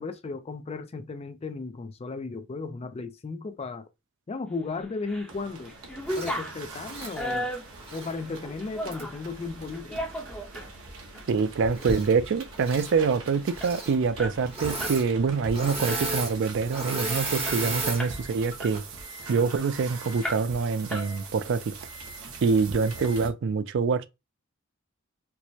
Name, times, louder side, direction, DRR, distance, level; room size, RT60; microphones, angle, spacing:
voice 1, 0.0-3.9 4.3-5.7 6.2-7.5 7.9-10.0, left 3 dB, 30° left, 0.4 m, -35 dB
sound 1, 4.8-5.3 5.6-9.2 9.7-10.7 11.1-11.3 11.7-12.0 12.3-12.4 12.7-15.0 15.3-15.5 15.9-16.3 16.8-16.9 17.1-18.2 18.6-19.8 20.2-20.6 20.9-21.5, equal, 5° left, 0.8 m, -35 dB
sound 2, 5.3-23.3, right 3 dB, 80° right, 0.9 m, -43 dB
Engine / Mechanisms, 6.1-6.4 6.8-8.1 8.9-9.0 11.7-12.3 12.5-12.9 13.5-14.0 14.5-15.1 15.3-18.0 18.5-18.8, right 2 dB, 25° right, 0.9 m, -33 dB
voice 2, 11.3-18.8 19.3-21.7 22.4-24.1, right 5 dB, 60° right, 0.4 m, -25 dB
4.5 x 2.1 x 2.7 m
head